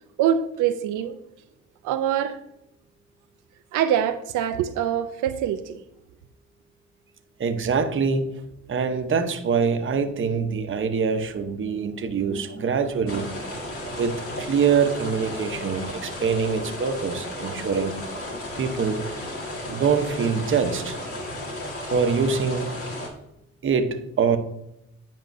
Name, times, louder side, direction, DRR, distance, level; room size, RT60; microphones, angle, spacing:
voice 1, 0.2-1.2 1.8-2.4 3.7-5.8, right 9 dB, 85° right, 0.5 m, -24 dB
voice 2, 7.4-8.3 8.7-13.3 13.9-17.9 18.6-19.1 19.7-21.0 21.9-22.7 23.6-24.4, right 5 dB, 40° right, 0.9 m, -24 dB
sound 1, 13.1-23.1, left 1 dB, 50° left, 1.9 m, -34 dB
9.2 x 5.3 x 2.6 m
cardioid pair, 90°, 30 cm